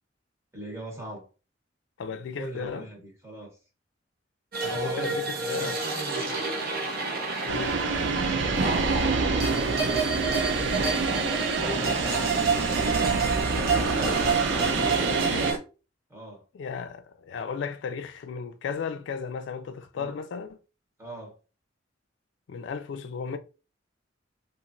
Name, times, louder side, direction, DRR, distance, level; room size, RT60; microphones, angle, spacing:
voice 1, 0.5-1.3 2.4-3.6 4.7-6.5 11.6-12.7 16.1-16.4 19.9-20.1 21.0-21.4, right 1 dB, 15° right, 0.9 m, -41 dB
voice 2, 2.0-2.9 4.6-5.8 7.4-8.0 14.6-15.5 16.5-20.5 22.5-23.4, left 5 dB, 70° left, 0.3 m, -35 dB
sound 1, 4.5-15.6, right 4 dB, 55° right, 0.8 m, -28 dB
sound 2, 7.5-15.5, right 4 dB, 70° right, 0.4 m, -27 dB
2.9 x 2.5 x 2.5 m
head